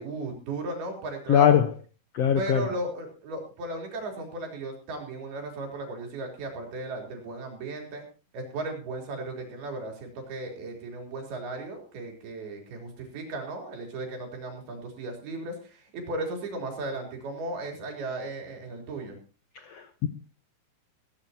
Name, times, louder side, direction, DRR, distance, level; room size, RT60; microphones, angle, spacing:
voice 1, 0.0-1.6 2.4-8.0 8.3-19.2, right 2 dB, 70° right, 2 dB, 5.8 m, -36 dB
voice 2, 1.3-1.7 2.1-2.6 19.7-20.1, left 9 dB, 80° left, 8 dB, 1.4 m, -21 dB
18.0 x 16.5 x 2.9 m, 0.33 s
omnidirectional pair, 4.6 m